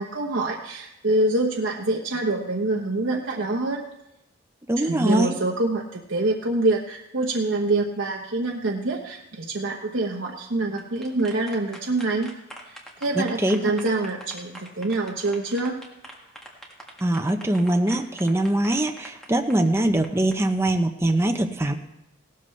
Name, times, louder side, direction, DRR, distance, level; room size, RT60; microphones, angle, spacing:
voice 1, 0.0-3.8 4.8-12.3 12.7-15.8, right 2 dB, 65° right, -1 dB, 1.0 m, -26 dB
voice 2, 4.7-5.4 13.1-13.6 17.0-21.7, right 1 dB, 15° right, 5 dB, 0.7 m, -22 dB
sound 1, 10.6-20.3, equal, 5° left, 1.6 m, -44 dB
17.0 x 13.0 x 3.2 m, 0.87 s
head